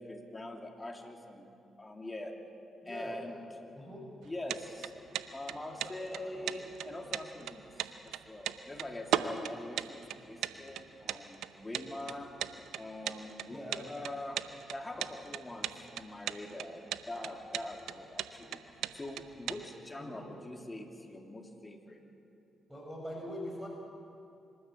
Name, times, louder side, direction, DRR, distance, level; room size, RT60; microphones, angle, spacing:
voice 1, 0.0-1.4 1.8-2.3 2.8-3.4 4.2-4.9 5.3-12.3 12.7-14.4 14.7-18.6 18.9-22.0, left 1 dB, 25° left, 2 dB, 3.1 m, -43 dB
voice 2, 2.8-3.2 3.8-4.0 5.8-6.5 13.5-13.8 20.0-20.3 22.7-23.7, equal, 5° right, -1 dB, 5.6 m, -43 dB
sound 1, 4.2-19.6, right 11 dB, 75° right, 0.7 m, -37 dB
26.0 x 13.5 x 8.2 m, 2.7 s
hypercardioid pair, 50°, 0 cm